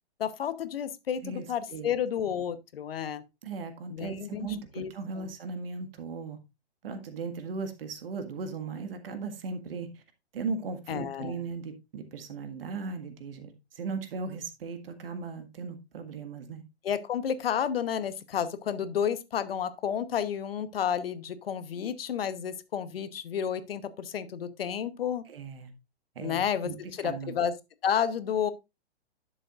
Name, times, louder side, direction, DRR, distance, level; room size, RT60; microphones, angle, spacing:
voice 1, 0.2-3.2 3.9-4.5 4.7-5.3 10.9-11.4 16.8-25.2 26.2-27.5 27.8-28.5, left 8 dB, 60° left, 1.1 m, -31 dB
voice 2, 3.4-6.4 6.8-9.9 10.3-16.6 25.3-25.7 26.2-26.7 27.0-27.3, right 4 dB, 60° right, 1.8 m, -37 dB
11.0 x 7.5 x 2.5 m
figure-of-eight pair, 120°, 33 cm